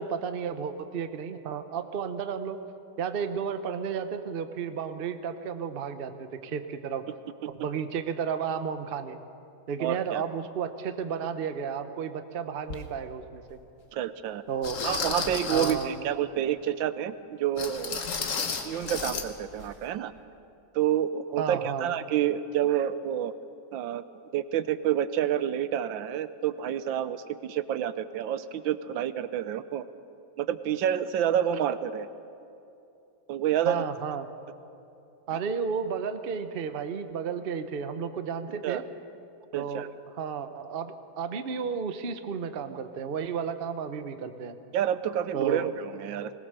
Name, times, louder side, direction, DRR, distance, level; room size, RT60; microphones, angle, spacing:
voice 1, 0.0-2.6 3.0-7.0 7.5-9.2 9.7-13.6 14.5-14.8 15.5-16.0 21.4-21.9 33.6-34.3 35.3-38.8 39.5-39.9 40.2-44.6 45.3-45.7, right 6 dB, 45° right, 9 dB, 0.7 m, -32 dB
voice 2, 9.8-10.2 13.9-14.4 14.8-18.0 18.6-20.1 20.7-23.3 23.7-24.0 24.3-29.8 30.4-32.1 33.3-33.8 38.6-38.8 39.5-39.9 44.7-46.3, right 10 dB, 80° right, 13 dB, 1.4 m, -28 dB
Curtain open and close, 12.7-12.8 13.5-13.6 14.6-15.9 17.6-19.3 19.6-19.7 20.2-20.3, left 5 dB, 45° left, 1.4 m, -32 dB
21.0 x 19.0 x 6.7 m, 2.7 s
omnidirectional pair, 2.1 m